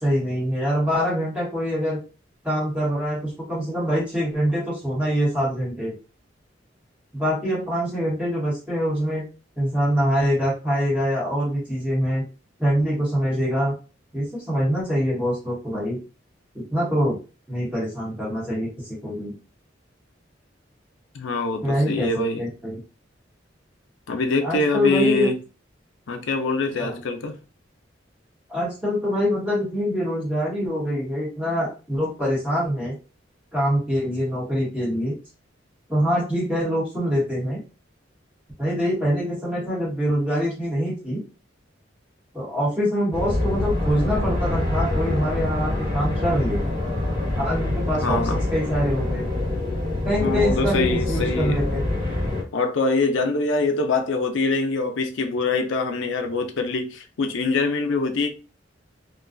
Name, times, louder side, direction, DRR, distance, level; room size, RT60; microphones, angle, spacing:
voice 1, 0.0-2.0 2.4-5.9 7.1-9.2 9.6-12.2 12.6-13.7 14.1-16.0 16.5-17.2 17.5-19.4 21.6-22.1 22.4-22.8 24.4-25.3 26.8-27.0 28.5-32.9 33.5-35.2 35.9-37.6 38.6-41.2 42.3-46.6 47.3-49.4 50.0-51.8, equal, 5° right, 1.0 m, -24 dB
voice 2, 21.1-22.4 24.1-25.4 26.1-27.4 47.9-48.4 50.2-51.6 52.5-58.3, left 3 dB, 85° left, 0.5 m, -24 dB
sound 1, 43.1-52.4, left 1 dB, 45° right, 1.4 m, -25 dB
2.5 x 2.2 x 2.4 m
head